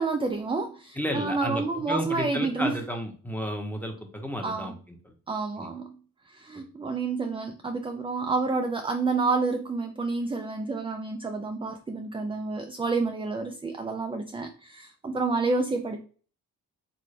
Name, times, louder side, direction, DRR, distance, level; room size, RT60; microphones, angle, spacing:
voice 1, 0.0-2.8 4.4-4.7 5.3-6.0 6.3-16.0, right 3 dB, 15° right, 5 dB, 0.3 m, -29 dB
voice 2, 1.0-4.7 5.0-5.1 5.6-5.7 6.5-6.6, equal, 5° left, 3 dB, 0.9 m, -32 dB
3.2 x 2.6 x 3.2 m, 0.40 s
cardioid pair, 50°, 39 cm